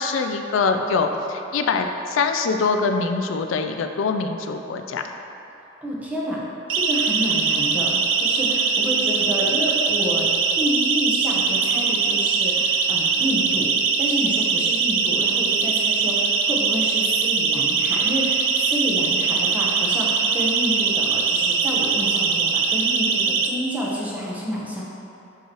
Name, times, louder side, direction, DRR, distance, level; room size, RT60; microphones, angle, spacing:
voice 1, 0.0-5.0, left 4 dB, 90° left, 6 dB, 0.4 m, -23 dB
voice 2, 5.8-6.4 6.7-24.8, equal, 10° right, -5 dB, 0.9 m, -29 dB
Siren, 6.7-23.5, right 5 dB, 80° right, 0.4 m, -21 dB
6.1 x 5.5 x 3.0 m, 2.9 s
head